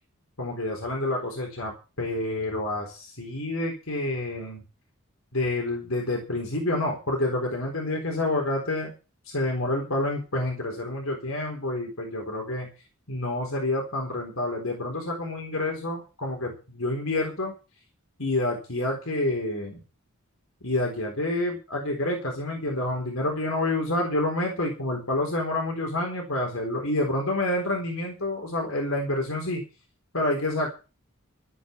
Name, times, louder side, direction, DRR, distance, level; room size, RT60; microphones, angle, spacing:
voice 1, 0.4-1.7 2.0-4.6 5.3-8.9 9.3-12.7 13.1-17.5 18.2-19.8 20.6-29.6 30.1-30.7, left 1 dB, 75° left, 0 dB, 4.2 m, -28 dB
13.0 x 8.9 x 7.0 m, 0.33 s
head